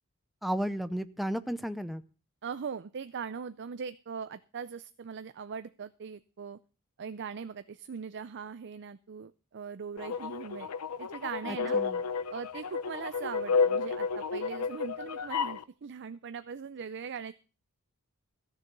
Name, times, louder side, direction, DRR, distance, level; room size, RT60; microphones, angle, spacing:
voice 1, 0.4-2.0 11.5-12.0, equal, ahead, 11 dB, 0.6 m, -33 dB
voice 2, 2.4-6.6 7.0-10.7 11.0-11.8 12.3-17.3, right 6 dB, 55° right, 12 dB, 0.5 m, -40 dB
sound 1, 10.0-15.6, left 5 dB, 90° left, 0.7 m, -31 dB
14.5 x 6.9 x 6.8 m, 0.36 s
head